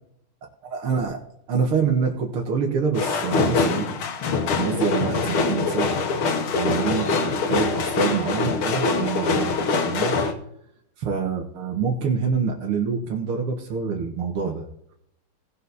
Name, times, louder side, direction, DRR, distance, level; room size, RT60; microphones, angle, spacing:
voice 1, 0.6-1.2 1.5-3.9 4.6-5.9 6.5-10.1 11.0-14.7, right 6 dB, 85° right, 0 dB, 2.3 m, -26 dB
sound 1, 2.9-10.3, left 4 dB, 75° left, 2.1 m, -24 dB
18.0 x 7.1 x 4.1 m, 0.72 s
omnidirectional pair, 2.4 m